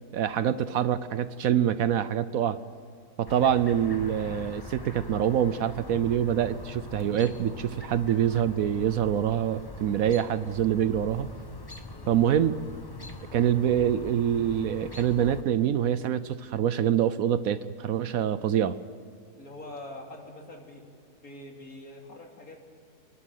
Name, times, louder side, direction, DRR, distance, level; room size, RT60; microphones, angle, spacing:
voice 1, 0.1-2.6 3.2-11.3 12.1-12.5 13.3-18.8, right 10 dB, 65° right, 14 dB, 1.0 m, -25 dB
Chirp tweet, 3.3-15.4, left 3 dB, 20° left, 0.9 m, -43 dB
voice 2, 11.9-12.3 19.4-20.8 21.2-22.6, left 1 dB, 60° left, 0 dB, 3.5 m, -44 dB
28.5 x 11.5 x 9.2 m, 2.4 s
omnidirectional pair, 1.7 m